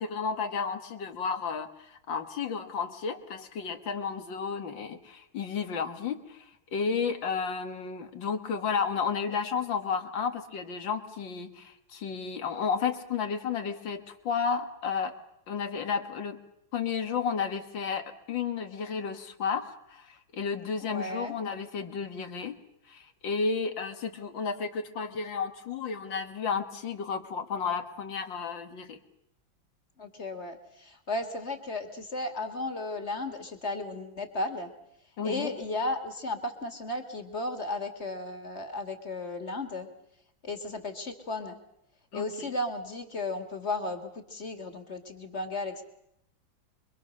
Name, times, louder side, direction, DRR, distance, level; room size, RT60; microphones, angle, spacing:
voice 1, 0.0-15.1 15.5-16.4 16.7-22.6 22.9-29.0 35.2-35.5 42.1-42.5, left 6 dB, 70° left, 7 dB, 2.3 m, -32 dB
voice 2, 20.8-21.3 30.0-34.7 35.2-39.9 40.4-41.6 42.1-45.8, left 2 dB, 35° left, 6 dB, 2.4 m, -34 dB
26.0 x 23.5 x 6.6 m, 0.77 s
omnidirectional pair, 2.1 m